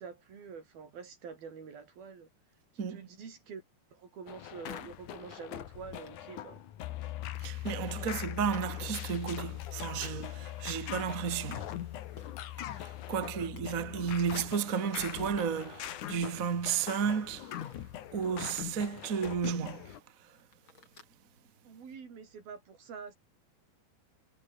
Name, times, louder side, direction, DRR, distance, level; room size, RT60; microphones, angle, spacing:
voice 1, 0.0-2.3 2.7-3.6 3.9-6.6 8.0-8.1 13.1-13.9 21.6-23.2, right 6 dB, 65° right, 6.4 m, -47 dB
voice 2, 2.8-3.1 7.4-11.7 12.6-17.6 18.1-20.4, right 7 dB, 50° right, 1.0 m, -33 dB
sound 1, 4.3-20.0, left 11 dB, 60° left, 2.5 m, -43 dB
sound 2, 4.7-4.8 5.9-6.3 7.3-7.5 8.8-9.1 9.7-10.1 12.2-12.3 13.1-13.2 13.4-13.6 14.5-14.6 14.8-15.1 15.9-16.3 17.6-17.9 18.9-19.1 19.8-19.9 20.3-21.2, left 4 dB, 30° left, 4.4 m, -54 dB
Piano, 6.8-14.5, left 16 dB, 80° left, 2.9 m, -42 dB
omnidirectional pair, 4.6 m